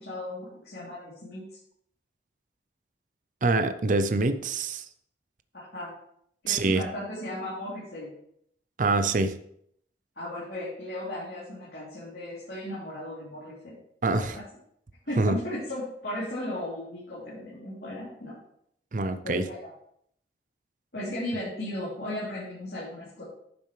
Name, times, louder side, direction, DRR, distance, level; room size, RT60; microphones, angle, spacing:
voice 1, 0.0-1.4 5.5-5.9 6.4-8.1 10.2-13.8 14.1-14.4 15.1-18.3 19.2-19.6 20.9-23.2, left 1 dB, 65° left, -9 dB, 3.1 m, -36 dB
voice 2, 3.4-4.8 6.5-6.8 8.8-9.3 14.0-14.4 15.2-15.4 18.9-19.4, right 3 dB, 45° right, 10 dB, 0.5 m, -25 dB
10.0 x 7.0 x 3.2 m, 0.70 s
head